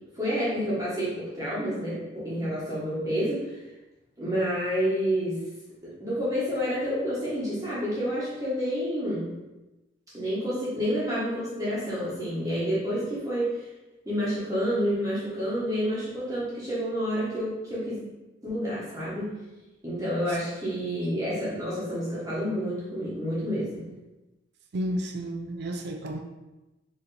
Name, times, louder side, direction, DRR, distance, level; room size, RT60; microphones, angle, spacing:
voice 1, 0.1-3.7 4.2-5.4 5.8-9.3 10.1-13.7 14.0-18.0 18.4-19.3 19.8-23.9, equal, 20° right, -9 dB, 1.1 m, -29 dB
voice 2, 24.7-26.2, right 1 dB, 60° right, 4 dB, 0.4 m, -32 dB
4.5 x 2.8 x 3.3 m, 1.0 s
head